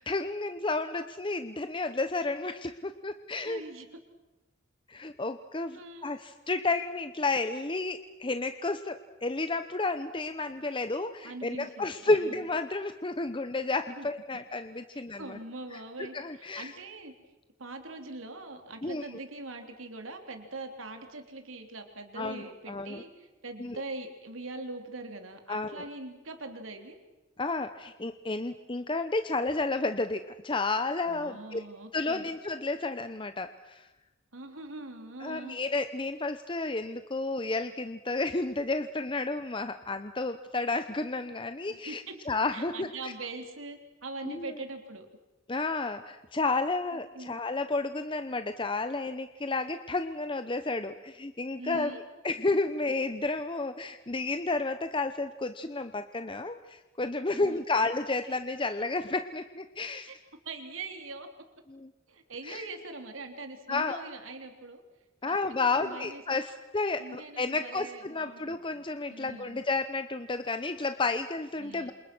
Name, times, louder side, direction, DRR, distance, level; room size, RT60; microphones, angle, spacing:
voice 1, 0.0-3.6 4.9-15.4 15.7-15.8 16.1-16.7 18.8-19.1 22.2-23.0 23.6-23.8 25.5-25.8 27.4-31.6 31.9-33.9 35.2-43.1 44.3-44.5 45.5-51.9 52.2-60.1 61.7-61.9 62.5-62.7 63.7-64.0 65.2-71.9, left 3 dB, 25° left, 9 dB, 0.9 m, -31 dB
voice 2, 3.5-3.9 5.7-6.1 11.2-12.4 14.0-14.1 14.9-17.1 17.6-27.0 31.1-32.3 34.3-35.6 41.7-42.1 42.5-45.1 46.9-47.4 51.6-52.0 57.3-57.9 60.1-60.2 60.5-61.3 62.1-64.8 65.2-66.5 67.0-68.8 69.1-69.6 71.6-71.9, right 2 dB, 80° right, 5 dB, 3.6 m, -42 dB
28.5 x 28.0 x 6.2 m, 1.1 s
head